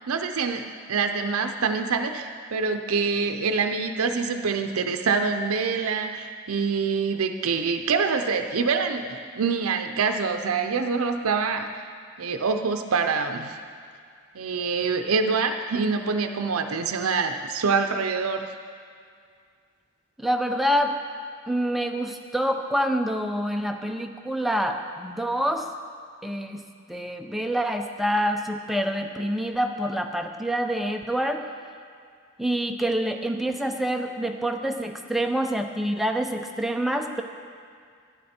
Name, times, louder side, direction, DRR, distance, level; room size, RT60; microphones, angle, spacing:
voice 1, 0.1-11.8 12.2-13.6 14.3-18.5, right 5 dB, 85° right, 6 dB, 0.6 m, -25 dB
voice 2, 20.2-21.0 21.5-25.7 26.2-26.6 26.9-31.4 32.4-37.2, equal, ahead, 3 dB, 0.6 m, -26 dB
14.0 x 10.5 x 4.3 m, 2.2 s
head